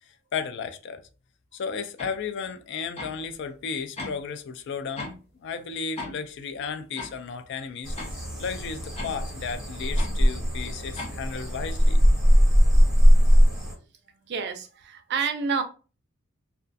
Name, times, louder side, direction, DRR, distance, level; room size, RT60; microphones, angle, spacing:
voice 1, 0.3-1.0 1.5-5.1 5.4-8.0 8.4-12.0, left 6 dB, 55° left, 0.3 m, -34 dB
sound 1, 2.0-2.2 3.0-3.2 4.0-4.2 5.0-5.2 6.0-6.2 7.0-7.2 8.0-8.1 9.0-9.2 10.0-10.2 11.0-11.2, left 2 dB, 30° left, 0.8 m, -37 dB
sound 2, 7.8-13.7, equal, 5° right, 1.2 m, -20 dB
voice 2, 14.3-15.6, right 5 dB, 55° right, 0.4 m, -28 dB
2.3 x 2.3 x 2.5 m
head